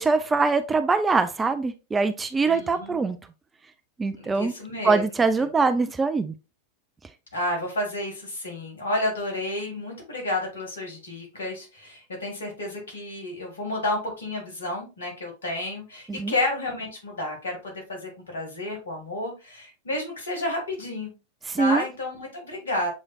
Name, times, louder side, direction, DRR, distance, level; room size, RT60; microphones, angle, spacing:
voice 1, 0.0-3.2 4.0-4.5 4.8-6.3 16.1-16.3 21.5-21.8, right 4 dB, 15° right, 10 dB, 0.4 m, -23 dB
voice 2, 2.4-3.0 4.1-5.0 7.3-21.1 21.6-22.9, left 1 dB, 70° left, 1 dB, 1.8 m, -31 dB
7.1 x 3.1 x 2.3 m, 0.29 s
figure-of-eight pair, 90°, 0 cm